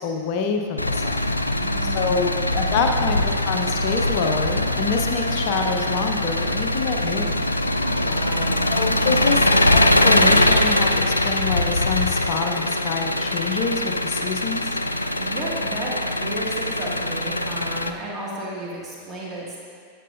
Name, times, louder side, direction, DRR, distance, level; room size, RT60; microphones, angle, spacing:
voice 1, 0.0-1.3 1.9-7.4 8.7-9.4 9.7-14.8, left 5 dB, 45° left, 4 dB, 0.8 m, -26 dB
Engine, 0.8-17.9, left 1 dB, 85° left, 0.3 m, -22 dB
voice 2, 1.4-3.1 8.0-9.5 15.2-19.6, right 1 dB, 20° right, -6 dB, 2.1 m, -34 dB
13.0 x 8.7 x 2.6 m, 2.1 s
figure-of-eight pair, 90°, 0 cm